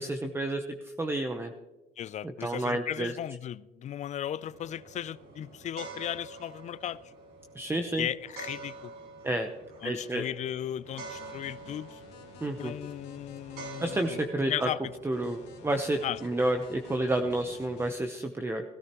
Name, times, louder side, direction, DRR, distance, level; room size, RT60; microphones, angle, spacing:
voice 1, 0.0-1.5 2.2-3.2 7.5-8.1 9.2-9.5 9.8-10.3 12.4-12.7 13.8-14.7 15.0-18.6, right 1 dB, 15° right, 0.8 m, -30 dB
voice 2, 2.0-7.0 8.0-8.9 9.3-9.4 9.8-12.0 12.6-14.2 14.5-14.9 16.0-16.2, left 10 dB, 45° left, 0.4 m, -36 dB
sound 1, 4.4-17.6, right 3 dB, 85° right, 4.9 m, -47 dB
sound 2, 10.8-14.2 15.1-17.9, left 6 dB, 85° left, 2.2 m, -53 dB
17.5 x 13.0 x 3.0 m
cardioid pair, 110°, 17 cm